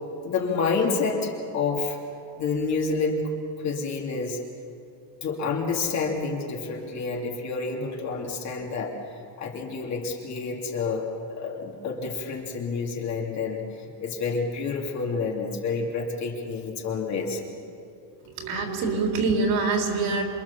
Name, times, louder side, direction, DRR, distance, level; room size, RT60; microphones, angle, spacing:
voice 1, 0.2-2.0 2.4-3.3 3.6-4.4 5.2-9.0 9.4-11.1 11.4-17.4, left 4 dB, 35° left, 0 dB, 2.7 m, -28 dB
voice 2, 18.4-20.2, right 3 dB, 45° right, 1 dB, 3.9 m, -25 dB
27.5 x 23.5 x 7.1 m, 2.6 s
cardioid pair, 175°, 49 cm